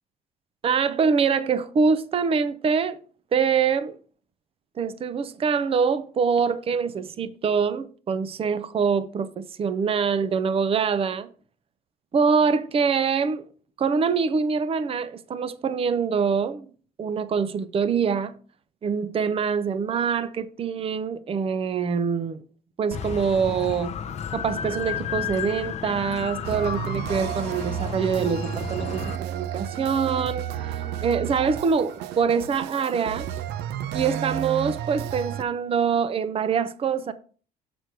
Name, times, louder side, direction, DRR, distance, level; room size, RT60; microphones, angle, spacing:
voice 1, 0.6-3.0 3.3-4.0 4.8-11.3 12.1-13.5 13.8-16.7 17.0-18.4 18.8-22.4 22.8-23.9 24.3-30.5 31.0-33.3 33.9-37.1, right 6 dB, 35° right, 0.6 m, -24 dB
sound 1, 22.9-29.2, left 8 dB, 40° left, 0.6 m, -33 dB
sound 2, 26.4-35.4, right 10 dB, 80° right, 0.6 m, -32 dB
6.7 x 6.1 x 4.6 m
cardioid pair, 110°, 17 cm